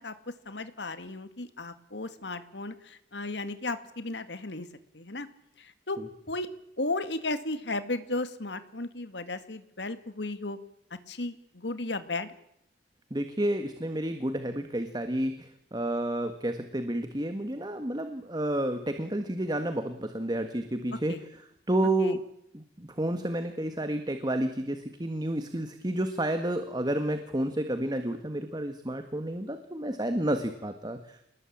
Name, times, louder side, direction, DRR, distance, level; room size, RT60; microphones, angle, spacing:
voice 1, 0.0-4.7 4.9-5.3 5.6-6.0 6.3-6.5 6.8-10.6 11.1-12.3 21.1-21.2 22.0-22.1, left 2 dB, 70° left, 11 dB, 2.1 m, -35 dB
voice 2, 13.1-21.2 21.7-22.2 22.5-31.2, right 1 dB, 25° right, 8 dB, 1.6 m, -30 dB
27.5 x 19.5 x 8.7 m, 0.77 s
head